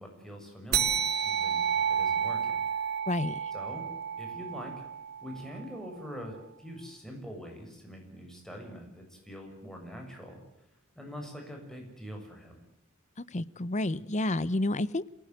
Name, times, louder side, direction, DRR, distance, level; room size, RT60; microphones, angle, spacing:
voice 1, 0.0-2.6 3.5-3.9 4.2-4.7 5.2-10.4 10.9-12.6, equal, 5° left, 1 dB, 6.9 m, -44 dB
sound 1, 0.7-5.6, right 7 dB, 50° right, 1.5 m, -30 dB
voice 2, 3.1-3.4 13.3-15.1, left 2 dB, 35° left, 18 dB, 0.8 m, -30 dB
27.5 x 18.5 x 8.0 m, 0.79 s
head